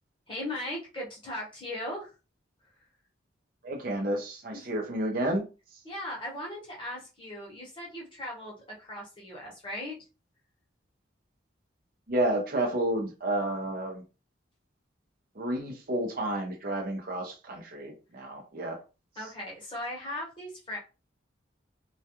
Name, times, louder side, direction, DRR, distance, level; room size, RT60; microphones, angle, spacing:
voice 1, 0.3-2.1 4.5-4.7 5.8-10.0 19.2-20.8, left 1 dB, 25° left, 1.0 m, -38 dB
voice 2, 3.6-5.4 12.1-14.0 15.4-18.8, right 1 dB, 50° right, 0.6 m, -30 dB
2.3 x 2.2 x 2.8 m
head